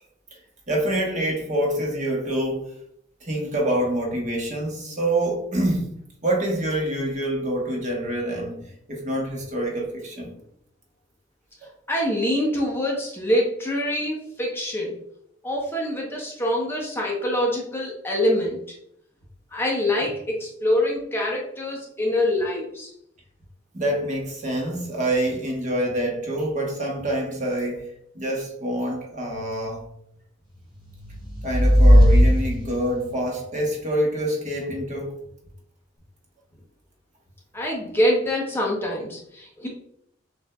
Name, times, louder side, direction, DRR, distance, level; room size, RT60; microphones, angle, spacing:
voice 1, 0.7-2.7 3.2-5.9 6.2-10.3 11.6-11.7 23.7-29.8 31.4-35.2, right 1 dB, 40° right, 1.1 m, -26 dB
voice 2, 11.9-15.0 15.4-18.6 19.5-22.9 37.5-39.7, left 1 dB, 10° left, 0.8 m, -25 dB
sound 1, 30.8-33.2, equal, 25° right, 1.1 m, -17 dB
6.7 x 2.5 x 2.2 m
head